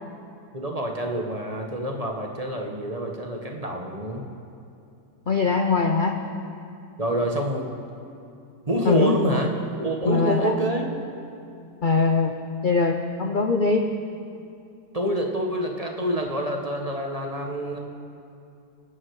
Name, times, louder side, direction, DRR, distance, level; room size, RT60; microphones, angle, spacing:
voice 1, 0.5-4.2 7.0-7.7 8.7-9.5 9.8-10.9 14.9-17.8, right 1 dB, 25° right, 1 dB, 1.1 m, -27 dB
voice 2, 5.3-6.2 8.8-9.4 10.1-10.5 11.8-12.3 12.6-13.8, left 4 dB, 55° left, 4 dB, 0.5 m, -22 dB
27.5 x 9.8 x 4.8 m, 2.6 s
omnidirectional pair, 1.9 m